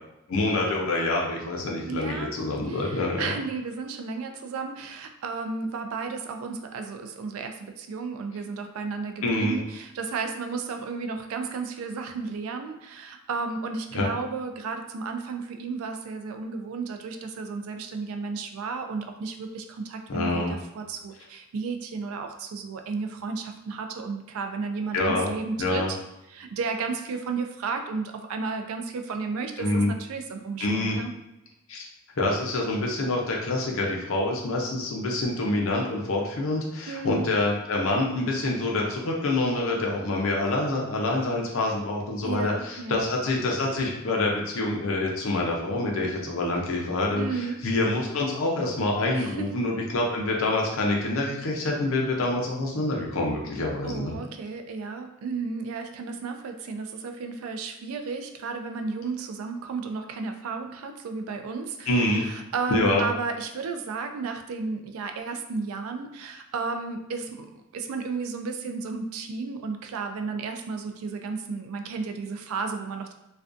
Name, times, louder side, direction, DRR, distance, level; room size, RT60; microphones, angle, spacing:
voice 1, 0.3-3.3 9.2-9.6 13.9-14.1 20.1-20.6 24.9-25.3 25.6-25.9 29.6-29.9 30.6-31.0 31.7-31.8 32.2-54.1 61.9-62.2 62.7-63.1, left 2 dB, 65° left, -1 dB, 0.5 m, -26 dB
voice 2, 1.8-2.3 2.7-26.0 26.3-31.1 36.9-37.3 42.2-43.1 47.1-47.6 49.1-49.5 53.8-73.1, right 4 dB, 75° right, 5 dB, 0.3 m, -33 dB
2.4 x 2.2 x 2.4 m, 0.90 s
head